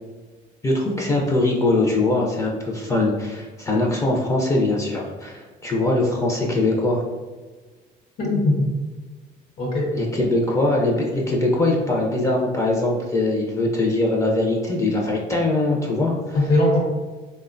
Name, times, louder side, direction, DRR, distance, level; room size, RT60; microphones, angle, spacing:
voice 1, 0.6-7.0 9.9-16.4, left 2 dB, 20° left, -2 dB, 0.4 m, -22 dB
voice 2, 8.2-8.7 9.6-9.9 16.3-16.8, left 1 dB, 65° left, -3 dB, 0.8 m, -20 dB
3.2 x 2.1 x 2.5 m, 1.3 s
cardioid pair, 110°, 17 cm